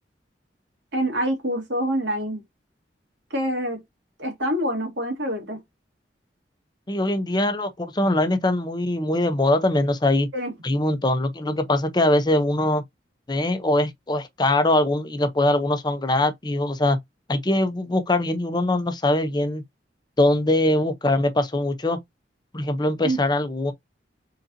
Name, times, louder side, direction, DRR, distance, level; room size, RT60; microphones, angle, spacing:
voice 1, 0.9-2.4 3.3-3.8 4.2-5.6 10.3-10.5 23.0-23.2, equal, 80° right, 2.0 m, -26 dB
voice 2, 6.9-10.3 10.6-12.8 13.3-17.0 17.3-19.6 20.2-22.0 22.5-23.7, left 1 dB, 25° left, 0.7 m, -22 dB
4.1 x 3.8 x 2.7 m
head